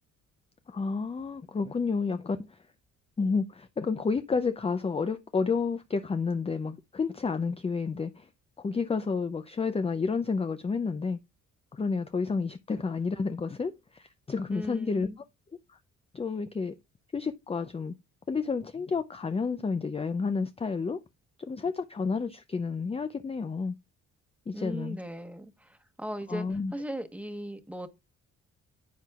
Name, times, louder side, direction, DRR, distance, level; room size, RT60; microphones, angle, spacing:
voice 1, 0.7-2.6 3.2-8.3 8.6-11.2 11.7-15.1 15.7-15.8 16.1-16.7 17.1-17.9 18.3-21.0 21.4-23.8 24.5-25.0 26.3-26.7, left 4 dB, 20° left, 0.5 m, -30 dB
voice 2, 14.5-15.2 24.5-27.9, equal, 5° right, 1.2 m, -38 dB
10.5 x 7.5 x 2.4 m
cardioid pair, 90°, 30 cm